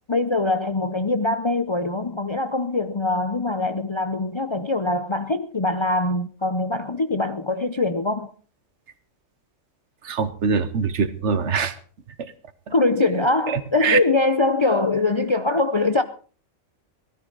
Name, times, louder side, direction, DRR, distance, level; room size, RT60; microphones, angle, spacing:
voice 1, 0.0-8.3 12.7-16.0, left 2 dB, 35° left, 0.5 m, -23 dB
voice 2, 10.0-11.7 12.2-12.3 13.5-14.0, right 5 dB, 65° right, 1.3 m, -23 dB
18.0 x 13.0 x 3.9 m
omnidirectional pair, 1.3 m